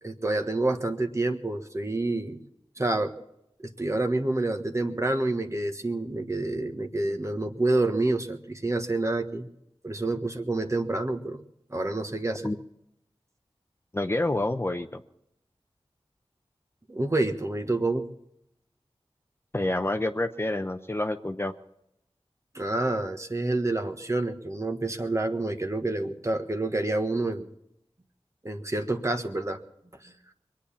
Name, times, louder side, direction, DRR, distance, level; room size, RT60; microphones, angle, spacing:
voice 1, 0.0-2.4 2.8-3.1 3.6-9.5 9.8-11.4 11.7-12.5 16.9-18.0 22.5-27.5 28.4-29.6 30.0-30.1, right 2 dB, 30° right, 6 dB, 1.3 m, -28 dB
voice 2, 13.9-15.0 19.5-21.5, left 1 dB, 25° left, 7 dB, 0.7 m, -28 dB
22.5 x 8.6 x 7.3 m, 0.80 s
wide cardioid pair, 50°, 10 cm